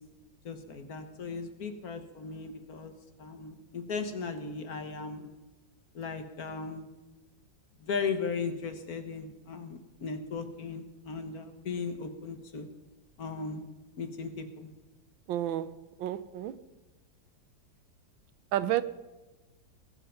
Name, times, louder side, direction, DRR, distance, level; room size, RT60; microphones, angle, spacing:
voice 1, 0.4-2.9 3.2-5.3 5.9-6.8 7.8-12.7 13.2-13.7 14.0-14.7, left 5 dB, 55° left, 1.6 m, -37 dB
voice 2, 15.3-15.7 16.0-16.6 18.5-18.8, right 13 dB, 90° right, 1.4 m, -30 dB
20.0 x 8.0 x 5.7 m
omnidirectional pair, 2.1 m